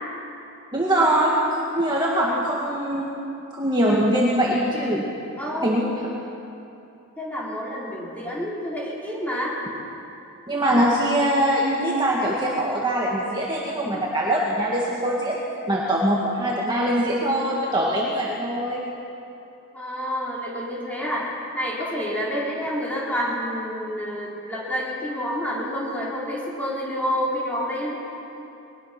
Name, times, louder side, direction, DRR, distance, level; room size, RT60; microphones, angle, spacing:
voice 1, 0.7-3.1 3.5-5.0 5.6-6.0 10.5-15.4 15.7-18.8, right 1 dB, 20° right, -4 dB, 1.9 m, -22 dB
voice 2, 5.4-5.7 7.2-9.6 19.7-28.0, equal, 5° left, -6 dB, 4.1 m, -28 dB
22.0 x 19.5 x 6.0 m, 2.8 s
head